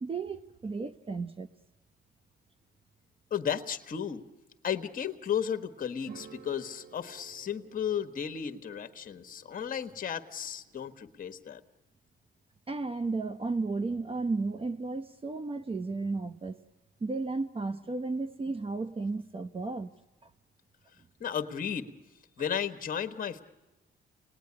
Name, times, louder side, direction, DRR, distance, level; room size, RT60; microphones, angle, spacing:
voice 1, 0.0-1.5 12.7-16.6 17.0-19.9 20.2-20.3, right 3 dB, 30° right, 0.8 m, -33 dB
voice 2, 3.3-4.2 4.6-11.6 21.2-21.9 22.4-23.4, left 8 dB, 45° left, 1.3 m, -34 dB
sound 1, 6.0-11.2, right 6 dB, 50° right, 1.6 m, -54 dB
29.5 x 19.0 x 9.7 m
cardioid pair, 90°, 20 cm